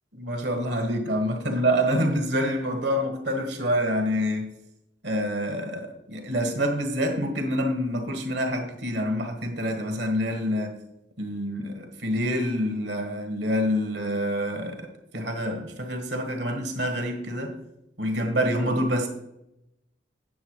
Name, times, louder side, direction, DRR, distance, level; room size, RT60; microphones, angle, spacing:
voice 1, 0.1-4.5 5.0-10.7 11.2-17.6 18.0-19.1, equal, 60° right, 1.7 m, -27 dB
9.2 x 7.0 x 4.8 m
head